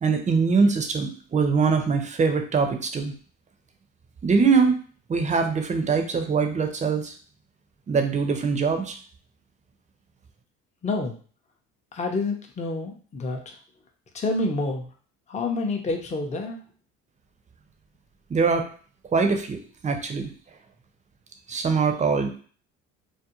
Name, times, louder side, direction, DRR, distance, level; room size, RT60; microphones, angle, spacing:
voice 1, 0.0-3.1 4.2-4.8 5.1-7.1 7.9-8.9 18.3-18.7 19.1-20.3 21.5-22.4, right 5 dB, 20° right, 5 dB, 0.5 m, -23 dB
voice 2, 10.8-11.2 11.9-13.5 14.1-14.9 15.3-16.6, left 3 dB, 20° left, 2 dB, 0.6 m, -28 dB
2.4 x 2.1 x 2.9 m, 0.42 s
hypercardioid pair, 70°, 33 cm